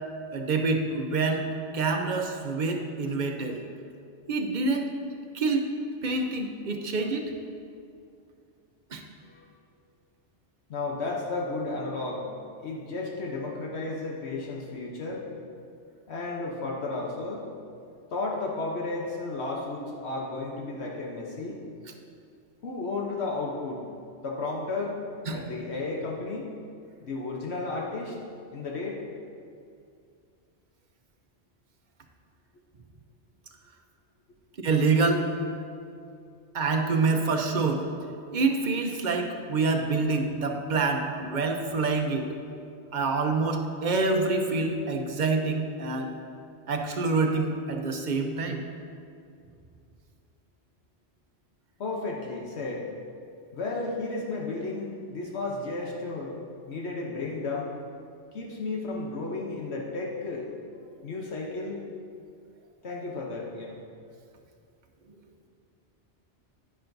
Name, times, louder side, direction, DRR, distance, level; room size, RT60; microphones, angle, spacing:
voice 1, 0.3-1.5 1.7-3.6 4.3-4.9 5.3-5.7 6.0-7.2 8.9-9.0 25.3-25.4 34.6-35.3 36.5-37.8 38.3-42.3 42.9-46.1 46.7-48.6, right 3 dB, 45° right, 3 dB, 0.8 m, -26 dB
voice 2, 10.7-12.3 12.6-15.3 16.1-17.5 18.1-21.6 22.6-23.8 24.2-25.0 25.3-26.5 27.0-28.2 28.5-29.0 51.8-52.9 53.5-56.4 56.7-57.7 58.3-60.5 61.0-61.8 62.8-63.8, left 3 dB, 75° left, -2 dB, 1.2 m, -33 dB
10.5 x 10.0 x 2.7 m, 2.4 s
omnidirectional pair, 1.1 m